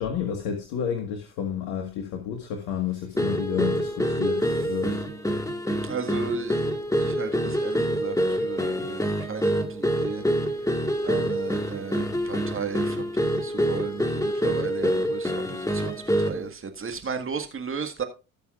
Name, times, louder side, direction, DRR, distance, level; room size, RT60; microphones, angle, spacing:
voice 1, 0.0-5.0, left 8 dB, 65° left, 1.8 m, -30 dB
sound 1, 3.2-16.5, equal, 5° left, 1.9 m, -26 dB
voice 2, 5.8-6.7 7.0-10.2 11.0-18.0, right 6 dB, 30° right, 1.8 m, -35 dB
19.0 x 6.8 x 2.5 m
hypercardioid pair, 65°, 43 cm